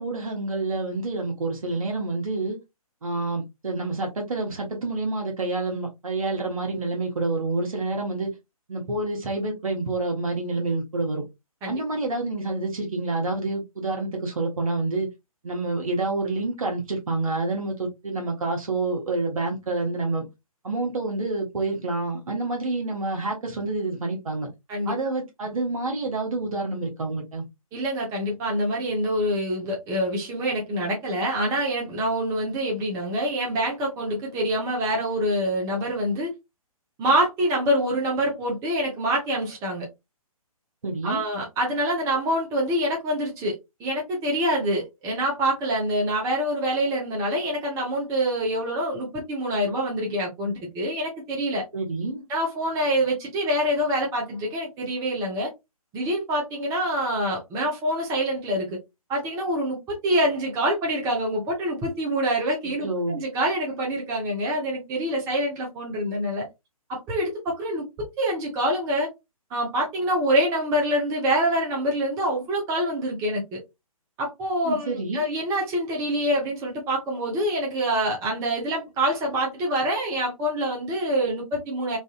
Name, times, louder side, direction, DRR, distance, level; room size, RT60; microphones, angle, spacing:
voice 1, 0.0-2.6 3.0-8.3 8.7-11.2 11.7-15.1 15.4-20.3 20.6-24.5 24.8-27.4 40.8-41.3 51.7-52.2 62.8-63.2 74.6-75.3, right 2 dB, 65° right, 1.3 m, -28 dB
voice 2, 27.7-36.3 37.0-39.9 41.0-43.5 43.8-51.6 52.3-55.5 55.9-58.8 59.1-66.5 66.9-67.8 68.2-69.1 69.5-73.6 74.2-82.0, right 1 dB, 15° right, 0.9 m, -26 dB
3.3 x 2.5 x 2.4 m
figure-of-eight pair, 135°, 19 cm